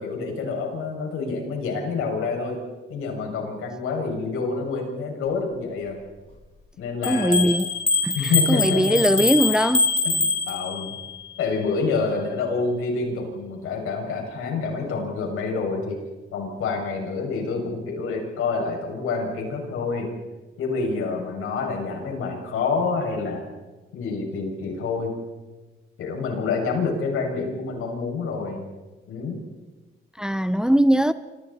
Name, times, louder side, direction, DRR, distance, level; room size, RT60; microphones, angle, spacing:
voice 1, 0.0-2.6 2.9-6.0 6.8-7.5 8.1-9.2 10.0-10.9 11.4-16.0 16.3-20.1 20.6-23.4 23.9-25.1 26.0-28.7 29.1-29.4, left 4 dB, 90° left, 6.7 m, -27 dB
sound 1, 7.0-11.0, left 4 dB, 30° left, 4.6 m, -24 dB
voice 2, 7.1-7.7 8.0-8.2 8.5-9.9 30.2-31.1, equal, 5° right, 0.7 m, -20 dB
29.5 x 26.5 x 4.3 m
cardioid pair, 125°, 21 cm